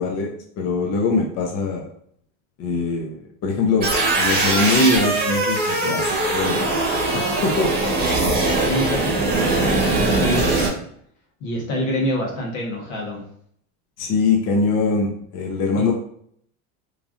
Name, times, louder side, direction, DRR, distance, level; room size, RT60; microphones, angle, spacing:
voice 1, 0.0-1.9 2.6-3.9 4.2-6.9 7.1-7.7 14.0-15.9, left 3 dB, 45° left, 0 dB, 0.6 m, -22 dB
sound 1, 3.8-10.7, right 2 dB, 25° right, 0.9 m, -21 dB
voice 2, 8.6-10.6 11.4-13.2 15.7-15.9, left 1 dB, 80° left, -1 dB, 1.2 m, -27 dB
3.1 x 2.5 x 2.4 m, 0.65 s
supercardioid pair, 120°, 37 cm